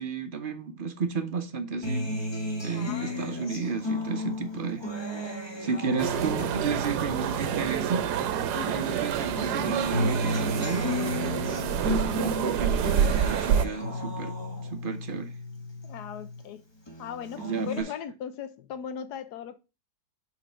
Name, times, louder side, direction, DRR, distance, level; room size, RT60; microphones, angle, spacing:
voice 1, 0.0-2.1 2.6-4.8 5.2-8.1 8.7-10.9 11.8-14.4 14.7-15.3 17.4-17.9, right 5 dB, 45° right, 0.7 m, -32 dB
Acoustic guitar, 1.8-8.5 8.8-16.5 16.9-17.8, left 1 dB, 20° left, 1.0 m, -34 dB
voice 2, 2.7-3.6 8.5-8.8 15.8-16.6 17.0-19.6, left 8 dB, 85° left, 1.3 m, -39 dB
sound 1, 6.0-13.7, right 9 dB, 90° right, 1.2 m, -28 dB
5.2 x 4.0 x 5.5 m
omnidirectional pair, 1.7 m